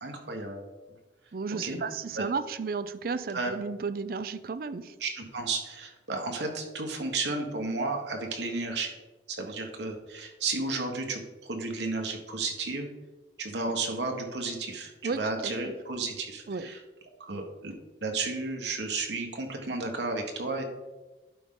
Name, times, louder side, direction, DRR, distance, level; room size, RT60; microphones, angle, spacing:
voice 1, 0.0-0.7 1.6-1.8 2.1-2.2 3.3-3.5 5.0-8.9 9.3-12.9 13.4-16.8 17.2-17.8 18.0-20.6, right 3 dB, 75° right, 2 dB, 1.3 m, -33 dB
voice 2, 1.3-5.0 9.4-9.5 15.0-15.7 16.5-16.7, right 4 dB, 55° right, 13 dB, 0.4 m, -33 dB
11.5 x 5.0 x 3.8 m, 1.2 s
head